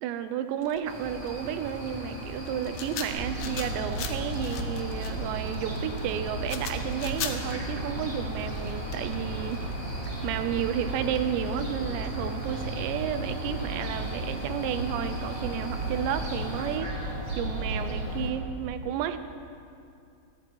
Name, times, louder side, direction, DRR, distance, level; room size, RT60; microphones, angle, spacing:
voice 1, 0.0-9.6 10.2-17.0 17.4-19.2, right 9 dB, 85° right, 10 dB, 2.9 m, -32 dB
sound 1, 0.6-10.7 11.2-11.3, left 8 dB, 70° left, 2.3 m, -40 dB
sound 2, 0.8-16.8, right 1 dB, 10° right, 2.3 m, -40 dB
Fowl, 3.1-18.3, right 1 dB, 40° right, 2.8 m, -34 dB
27.5 x 10.5 x 4.6 m, 2.4 s
omnidirectional pair, 5.1 m